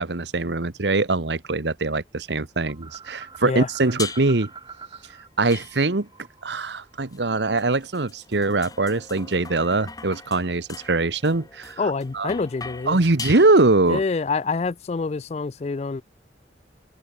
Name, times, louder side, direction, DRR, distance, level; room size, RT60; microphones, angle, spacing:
voice 1, 0.0-4.5 5.4-6.1 6.4-12.3 12.9-14.0, right 3 dB, 80° right, 1.3 m, -22 dB
sound 1, 2.7-5.3 5.5-7.8, right 5 dB, 25° right, 6.9 m, -44 dB
sound 2, 4.0-4.5 5.5-6.2 7.1-14.0, left 5 dB, 20° left, 1.8 m, -40 dB
voice 2, 11.8-13.0 13.9-16.0, left 4 dB, 35° left, 0.4 m, -26 dB
open air
head